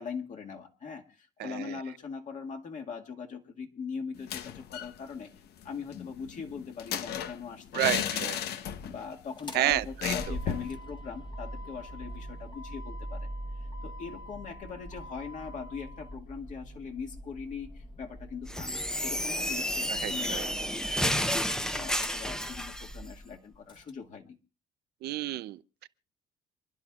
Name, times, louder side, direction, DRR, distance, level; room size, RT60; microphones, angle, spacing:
voice 1, 0.0-5.3 5.6-13.3 13.6-21.3 21.7-24.4, left 5 dB, 45° left, 2.0 m, -41 dB
voice 2, 1.4-1.8 7.7-8.4 9.5-10.3 19.9-20.4 25.0-25.9, right 15 dB, 70° right, 0.6 m, -31 dB
sound 1, 4.1-5.0 5.2-5.3 5.6-9.1 9.4-9.5 10.0-10.7, left 9 dB, 75° left, 1.0 m, -34 dB
Motor vehicle (road), 9.2-23.9, equal, 25° left, 1.4 m, -43 dB
sound 2, 18.5-22.9, equal, 5° left, 0.7 m, -31 dB
28.0 x 11.0 x 2.4 m
cardioid pair, 110°, 17 cm